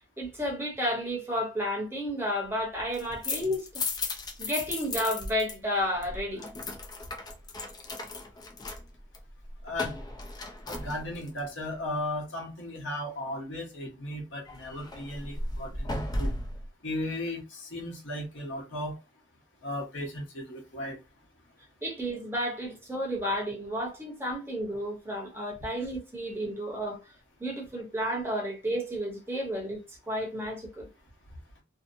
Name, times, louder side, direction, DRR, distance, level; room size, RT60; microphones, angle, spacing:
voice 1, 0.2-3.8 4.4-6.5 21.8-27.0 27.4-29.8 30.1-30.9, equal, 10° right, 0.9 m, -32 dB
sound 1, 2.8-5.6 5.8-11.4 14.5-16.7, left 2 dB, 20° left, 0.4 m, -36 dB
voice 2, 9.6-10.0 10.7-16.3 16.8-19.0 19.6-21.0, left 1 dB, 65° left, 1.0 m, -36 dB
2.8 x 2.0 x 2.6 m
head